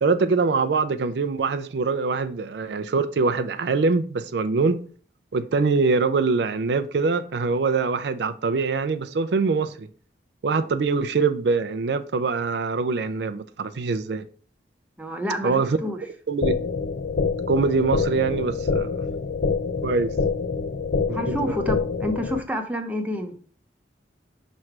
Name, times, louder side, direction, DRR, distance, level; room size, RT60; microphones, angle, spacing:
voice 1, 0.0-4.8 5.3-9.9 10.4-14.2 15.4-15.7 16.3-16.6 17.5-18.9 19.8-20.1 21.1-21.5, right 4 dB, 70° right, 0.4 m, -23 dB
voice 2, 15.0-16.0 21.1-23.3, equal, 10° right, 0.8 m, -29 dB
sound 1, 16.4-22.4, left 5 dB, 60° left, 0.4 m, -26 dB
6.1 x 3.2 x 5.8 m
head